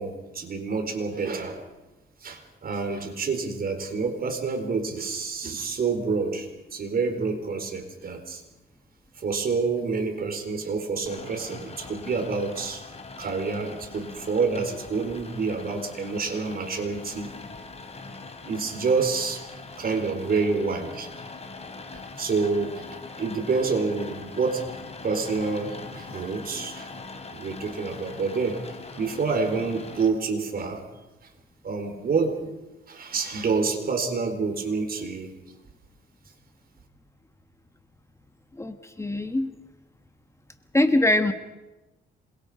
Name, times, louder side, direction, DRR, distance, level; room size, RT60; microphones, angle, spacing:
voice 1, 0.0-1.6 2.2-8.4 9.2-12.8 13.2-17.3 18.4-19.4 19.8-21.1 21.9-22.8 23.2-24.6 25.0-26.9 27.3-28.6 29.0-30.8 31.6-32.5 32.9-35.3, right 4 dB, 50° right, 5 dB, 4.3 m, -28 dB
Rain, 11.1-30.1, left 3 dB, 30° left, 3.2 m, -42 dB
voice 2, 38.6-39.5 40.7-41.3, left 1 dB, 15° left, 8 dB, 1.4 m, -22 dB
26.5 x 22.0 x 5.1 m, 1.0 s
cardioid pair, 90°, 20 cm